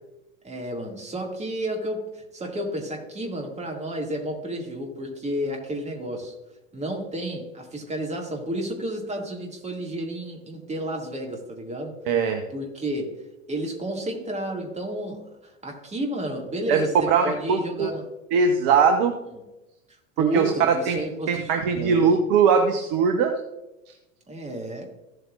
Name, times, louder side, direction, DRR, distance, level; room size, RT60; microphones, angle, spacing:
voice 1, 0.4-6.3 6.7-12.0 12.5-13.2 13.5-18.1 20.2-22.1 24.3-24.9, right 1 dB, 15° right, 1 dB, 2.2 m, -31 dB
voice 2, 12.1-12.4 16.7-17.9 18.3-19.2 20.2-23.3, right 6 dB, 45° right, 6 dB, 0.9 m, -21 dB
15.0 x 7.8 x 2.5 m, 0.99 s
figure-of-eight pair, 80°, 41 cm